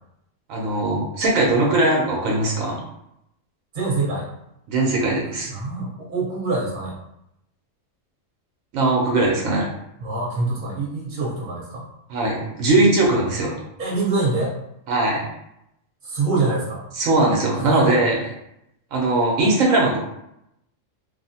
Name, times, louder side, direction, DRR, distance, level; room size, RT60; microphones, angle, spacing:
voice 1, 0.5-2.8 4.7-5.5 8.7-9.7 12.1-13.6 14.9-15.3 16.9-18.3 18.9-20.0, right 2 dB, 80° right, -2 dB, 1.0 m, -20 dB
voice 2, 3.7-4.3 5.5-6.9 10.0-11.8 13.8-14.6 16.0-16.9 17.6-17.9, right 3 dB, 40° right, -5 dB, 1.1 m, -25 dB
3.0 x 2.0 x 2.7 m, 0.80 s
omnidirectional pair, 1.4 m